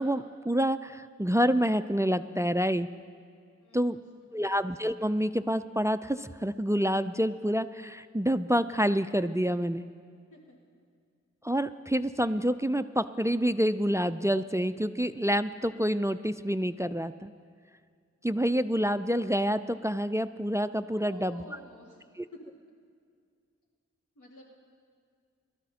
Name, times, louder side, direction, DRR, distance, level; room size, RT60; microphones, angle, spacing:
voice 1, 0.0-2.9 3.7-4.0 4.3-9.8 11.4-17.3 18.2-21.4 22.2-22.3, equal, 10° right, 12 dB, 0.3 m, -27 dB
voice 2, 3.6-4.1 4.4-4.5 10.3-10.6 20.9-22.0 22.3-22.5 24.2-24.4, left 1 dB, 85° left, -3 dB, 2.0 m, -51 dB
23.0 x 13.0 x 2.8 m, 2.2 s
wide cardioid pair, 50°, 29 cm